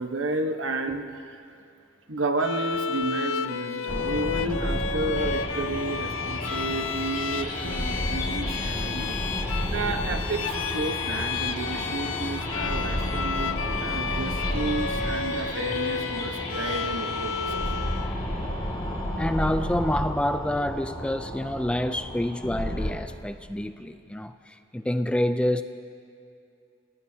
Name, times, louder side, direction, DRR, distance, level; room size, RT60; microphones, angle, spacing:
voice 1, 0.0-1.5 2.1-9.2 9.7-17.7, right 2 dB, 75° right, 5 dB, 1.1 m, -32 dB
Bowed string instrument, 2.4-18.2, left 6 dB, 75° left, 0.6 m, -32 dB
sound 1, 3.9-22.9, equal, 20° left, 2.1 m, -32 dB
sound 2, 5.1-20.4, left 2 dB, 45° left, 4.3 m, -40 dB
voice 2, 19.2-25.6, left 1 dB, 5° left, 9 dB, 0.4 m, -27 dB
29.0 x 17.0 x 2.8 m, 2.5 s
head